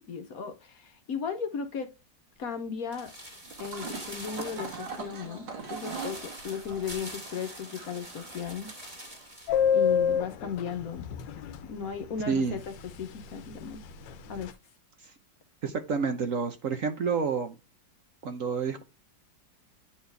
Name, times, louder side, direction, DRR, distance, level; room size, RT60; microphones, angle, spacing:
voice 1, 0.1-1.9 2.4-3.1 3.6-8.7 9.7-11.0 11.6-12.7 13.0-13.8 14.3-14.6, left 6 dB, 60° left, 1.2 m, -36 dB
sound 1, 2.9-9.6 9.9-10.0, equal, 20° right, 1.8 m, -45 dB
sound 2, 3.5-9.3, right 4 dB, 75° right, 2.5 m, -42 dB
Subway metro underground, 9.5-11.7 11.9-12.0 12.3-12.5 12.8-13.2 13.5-14.5, left 7 dB, 80° left, 1.4 m, -26 dB
voice 2, 15.6-17.6 18.2-18.8, right 5 dB, 55° right, 1.1 m, -29 dB
9.5 x 4.4 x 3.3 m
omnidirectional pair, 2.0 m